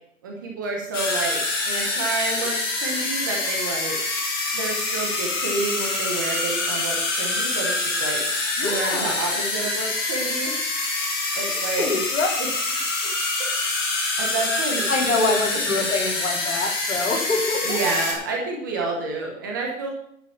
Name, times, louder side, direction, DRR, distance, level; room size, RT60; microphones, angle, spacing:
voice 1, 0.2-1.4 1.6-3.9 4.5-8.2 8.6-10.5 11.3-11.9 12.4-12.5 12.8-13.1 14.2-15.8 17.6-19.9, right 3 dB, 15° right, -1 dB, 1.1 m, -29 dB
sound 1, 0.9-18.1, left 2 dB, 20° left, 1.3 m, -26 dB
voice 2, 8.6-9.1 11.8-12.3 14.9-17.8, left 3 dB, 75° left, -1 dB, 3.7 m, -25 dB
10.5 x 5.7 x 7.2 m, 0.70 s
hypercardioid pair, 175°, 40 cm